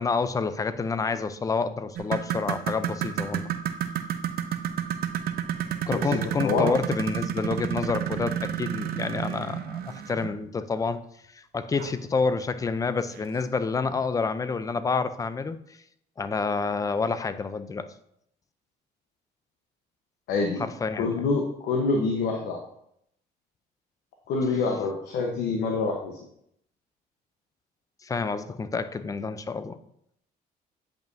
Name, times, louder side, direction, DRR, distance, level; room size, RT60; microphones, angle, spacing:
voice 1, 0.0-3.5 5.9-11.0 11.3-15.6 16.2-17.9 20.6-21.2 28.0-29.8, left 4 dB, 20° left, 12 dB, 0.4 m, -28 dB
sound 1, 2.0-10.4 11.8-11.9 12.4-12.5 13.1-13.2, right 10 dB, 65° right, 0.6 m, -31 dB
voice 2, 5.9-6.7 20.3-20.6 21.0-22.6 24.3-26.2, left 4 dB, 80° left, 2 dB, 1.0 m, -26 dB
8.9 x 5.4 x 2.6 m, 0.73 s
cardioid pair, 110°, 17 cm